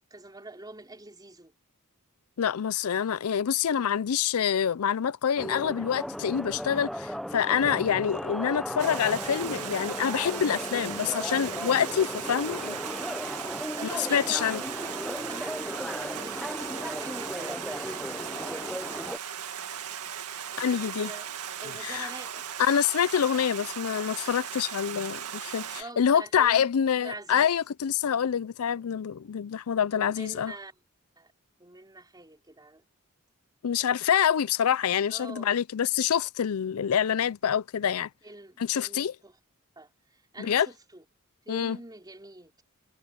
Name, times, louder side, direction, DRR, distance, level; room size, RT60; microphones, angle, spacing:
voice 1, 0.0-1.5 13.8-18.9 20.5-22.5 25.7-26.7 27.0-27.5 29.9-30.7 31.2-31.3 31.6-32.8 35.1-35.5 37.8-38.0 38.2-39.4 39.8-41.0 41.5-42.6, right 2 dB, 20° right, 4.0 m, -45 dB
voice 2, 2.4-12.8 14.0-14.6 20.6-21.1 21.8-22.1 22.6-30.5 33.6-38.1 38.6-39.1 40.4-40.7 41.5-41.8, left 8 dB, 70° left, 0.4 m, -26 dB
sound 1, 5.4-19.2, equal, ahead, 0.7 m, -36 dB
Stream, 8.8-25.8, right 8 dB, 90° right, 2.0 m, -38 dB
head